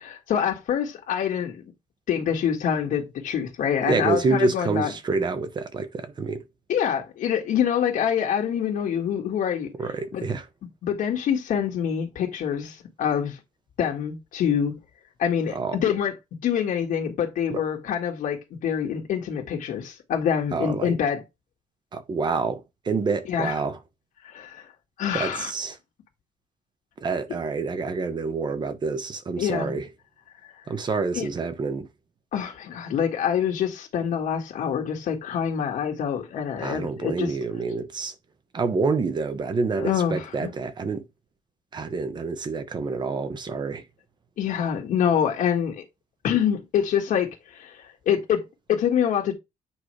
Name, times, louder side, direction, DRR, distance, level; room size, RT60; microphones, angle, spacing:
voice 1, 0.0-1.6 2.1-4.9 6.7-9.7 10.1-10.2 10.8-13.4 13.8-14.8 15.2-16.1 16.4-21.2 23.3-23.6 24.2-24.7 25.0-25.5 29.4-29.8 31.2-31.3 32.3-37.3 39.8-40.5 44.4-45.8 46.2-49.3, left 8 dB, 75° left, 1.8 m, -26 dB
voice 2, 3.8-6.4 9.8-10.5 15.5-15.8 17.5-17.6 20.5-21.0 21.9-23.8 25.1-25.8 27.0-29.9 30.7-31.9 36.6-38.1 38.5-41.0 41.7-43.8, right 4 dB, 30° right, 1.0 m, -27 dB
8.8 x 5.0 x 3.3 m
cardioid pair, 155°, 14 cm